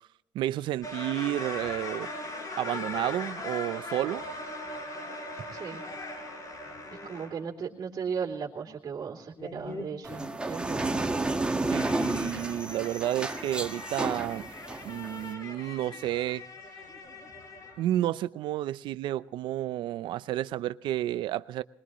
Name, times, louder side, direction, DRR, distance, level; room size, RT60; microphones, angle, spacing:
voice 1, 0.3-2.1 2.6-4.2 11.7-14.5 14.8-16.4 17.8-21.6, right 13 dB, 85° right, 0.6 m, -31 dB
sound 1, 0.8-7.4 9.4-10.6 11.7-17.8, left 2 dB, 50° left, 7.5 m, -40 dB
voice 2, 5.5-5.8 6.9-11.7, right 6 dB, 50° right, 3.2 m, -37 dB
sound 2, 10.0-15.3, right 2 dB, 10° right, 1.6 m, -31 dB
22.0 x 21.0 x 3.1 m
cardioid pair, 95°, 8 cm